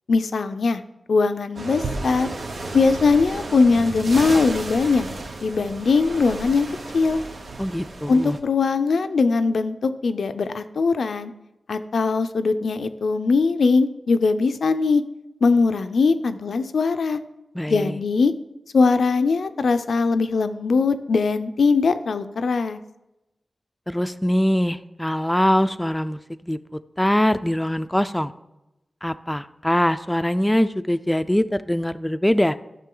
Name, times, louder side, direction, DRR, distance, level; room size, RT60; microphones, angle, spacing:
voice 1, 0.1-0.8 1.1-2.3 2.7-5.1 5.4-6.7 6.9-7.2 8.1-11.3 11.7-15.0 15.4-17.2 17.7-18.3 18.7-22.8, left 4 dB, 90° left, 10 dB, 0.5 m, -20 dB
sound 1, 1.6-8.4, right 2 dB, 90° right, 1.1 m, -33 dB
voice 2, 7.6-8.4 17.5-18.0 23.9-26.6 27.0-28.3 29.0-32.6, equal, 10° left, 12 dB, 0.4 m, -22 dB
13.0 x 6.6 x 3.8 m, 0.94 s
wide cardioid pair, 105°, 0 cm